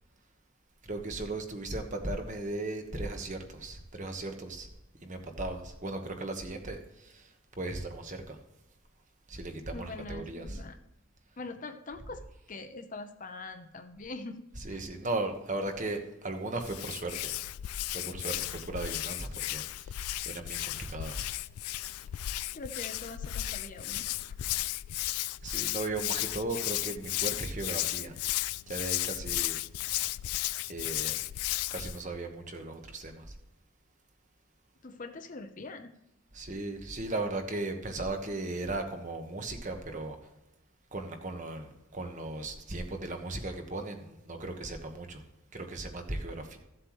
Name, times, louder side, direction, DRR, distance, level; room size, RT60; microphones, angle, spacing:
voice 1, 0.8-4.7 5.0-7.3 7.6-8.4 9.3-10.6 14.6-17.3 17.9-21.3 22.8-22.9 25.4-28.1 28.7-29.6 30.7-31.2 31.7-33.2 36.3-40.2 40.9-45.2 45.5-46.6, right 2 dB, 35° right, 5 dB, 1.2 m, -37 dB
voice 2, 9.7-10.8 11.4-12.2 12.5-14.8 22.5-24.1 34.8-35.9, left 3 dB, 35° left, 7 dB, 0.7 m, -43 dB
Hands, 16.6-32.0, left 16 dB, 85° left, 0.3 m, -34 dB
15.0 x 7.7 x 3.1 m, 0.95 s
head